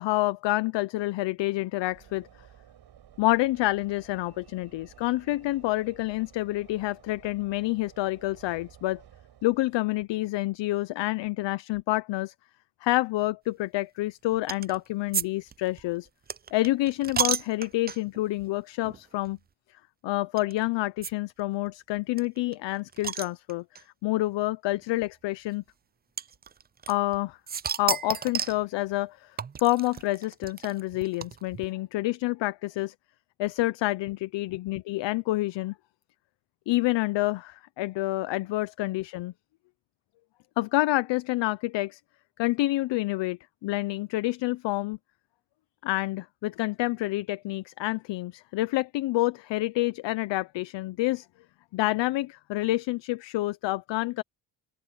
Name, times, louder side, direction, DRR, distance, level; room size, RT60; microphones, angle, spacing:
voice 1, 0.0-2.3 3.2-9.0 9.4-12.3 12.8-16.1 16.5-19.4 20.0-25.6 26.9-27.4 27.8-32.9 33.4-35.7 36.7-39.3 40.6-42.0 42.4-45.0 45.8-51.3 51.7-54.2, left 18 dB, 80° left, 0.7 m, -28 dB
Train / Engine / Alarm, 1.8-10.1, right 10 dB, 65° right, 5.1 m, -54 dB
sound 1, 14.5-14.8 15.1-15.3 15.5-18.2 18.8-19.0 19.2-19.3 20.4-20.5 21.0-21.1 21.4-21.5 21.7-21.8 22.2-23.8 24.7-24.8 26.2-27.2 27.5-28.6 29.4-31.7, right 7 dB, 25° right, 0.4 m, -32 dB
open air
cardioid pair, 105°, 43 cm